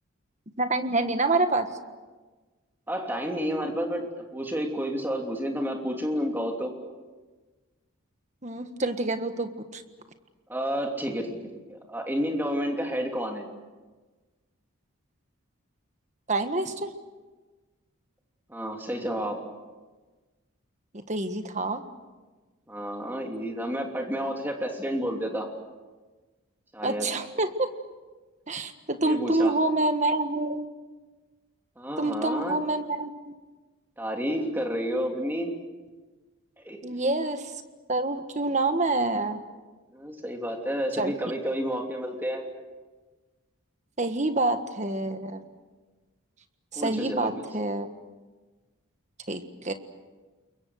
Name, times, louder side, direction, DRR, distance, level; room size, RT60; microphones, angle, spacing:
voice 1, 0.6-1.7 8.4-9.8 16.3-16.9 20.9-21.8 26.8-27.7 28.5-30.7 32.0-33.3 36.8-37.5 37.9-39.4 41.0-41.1 44.0-45.4 46.7-47.9 49.3-49.7, right 2 dB, 35° right, 8 dB, 1.5 m, -27 dB
voice 2, 2.9-6.7 10.5-11.4 11.7-13.5 18.5-19.4 22.7-25.5 26.7-27.1 29.0-29.5 31.8-32.6 34.0-35.5 36.6-36.8 39.9-42.4 46.8-47.3, equal, 10° right, 2 dB, 2.9 m, -30 dB
29.0 x 23.0 x 6.5 m, 1.3 s
head